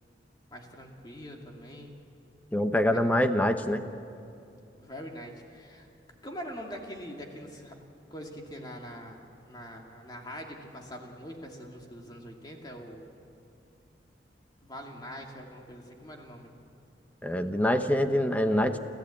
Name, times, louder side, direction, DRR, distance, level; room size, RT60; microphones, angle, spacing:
voice 1, 0.5-2.0 2.9-3.0 4.7-5.9 6.2-7.8 8.1-13.1 14.6-16.6, equal, 25° left, 1 dB, 2.4 m, -43 dB
voice 2, 2.5-3.8 17.2-18.8, left 1 dB, 10° left, 8 dB, 0.8 m, -25 dB
27.5 x 15.0 x 8.6 m, 2.6 s
head